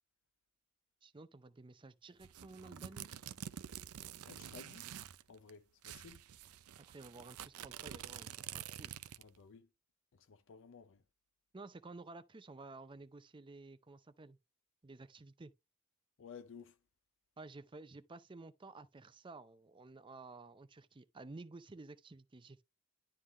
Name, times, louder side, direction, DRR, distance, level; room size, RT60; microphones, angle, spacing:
voice 1, 1.0-3.3 6.8-9.0 11.5-14.4 14.8-15.5 17.4-22.6, right 3 dB, 20° right, 0.5 m, -53 dB
sound 1, 2.2-5.2 5.5-5.6 5.8-9.4, right 9 dB, 85° right, 0.5 m, -48 dB
voice 2, 4.3-4.9 5.3-6.2 9.2-9.7 10.1-11.0 16.2-16.8, left 5 dB, 60° left, 0.5 m, -55 dB
11.0 x 3.8 x 3.1 m
head